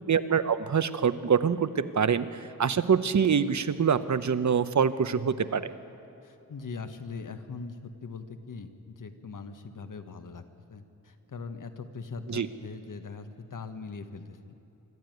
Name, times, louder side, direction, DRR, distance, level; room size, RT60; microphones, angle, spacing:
voice 1, 0.1-5.7 12.3-12.5, right 7 dB, 65° right, 12 dB, 0.9 m, -25 dB
voice 2, 6.2-10.4 10.7-14.4, left 4 dB, 75° left, 8 dB, 1.4 m, -41 dB
26.5 x 12.5 x 9.3 m, 3.0 s
wide cardioid pair, 110°, 32 cm